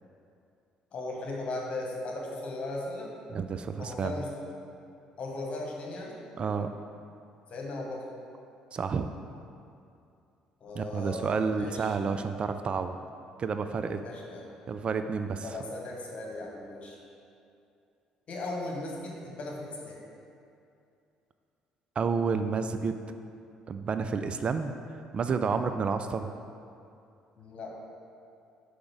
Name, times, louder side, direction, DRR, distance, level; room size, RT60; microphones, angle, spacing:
voice 1, 0.9-3.1 3.8-4.3 5.2-6.1 7.5-8.1 10.6-11.9 13.8-14.5 15.4-17.0 18.3-20.0 25.4-25.6 27.4-27.7, left 2 dB, 50° left, -1 dB, 1.6 m, -37 dB
voice 2, 3.3-4.2 6.4-6.7 8.7-9.1 10.7-13.0 13.4-14.0 14.7-15.4 22.0-23.0 23.7-24.8 25.1-26.3, right 5 dB, 40° right, 8 dB, 0.4 m, -30 dB
5.0 x 4.9 x 6.0 m, 2.5 s
hypercardioid pair, 60°, 3 cm